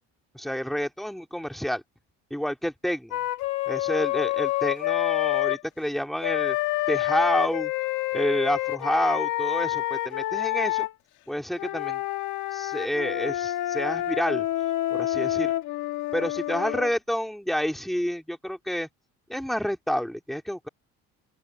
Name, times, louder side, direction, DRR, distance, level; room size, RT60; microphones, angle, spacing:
voice 1, 0.3-1.8 2.3-3.2 3.7-6.6 6.9-7.7 8.1-10.9 11.3-12.0 12.5-14.5 14.9-15.5 16.1-18.9 19.3-20.7, equal, ahead, 2.6 m, -29 dB
Wind instrument woodwind instrument, 3.1-5.6 6.2-10.9 11.5-16.9, left 16 dB, 75° left, 2.3 m, -28 dB
open air
cardioid pair, 140°, 30 cm